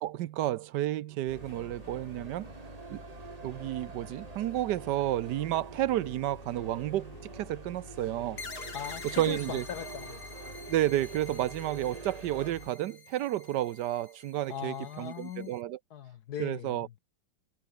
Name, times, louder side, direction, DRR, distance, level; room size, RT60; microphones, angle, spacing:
voice 1, 0.0-2.5 2.9-3.0 3.4-8.4 9.2-9.6 10.7-15.8 16.4-16.9, right 13 dB, 70° right, 1.2 m, -31 dB
sound 1, 1.3-12.7, left 2 dB, 30° left, 3.1 m, -49 dB
sound 2, 1.3-12.5, right 5 dB, 40° right, 0.5 m, -48 dB
sound 3, 8.4-15.6, left 4 dB, 80° left, 4.7 m, -47 dB
voice 2, 8.7-10.2 14.5-15.5 15.9-16.8, left 9 dB, 65° left, 1.3 m, -39 dB
omnidirectional pair, 2.0 m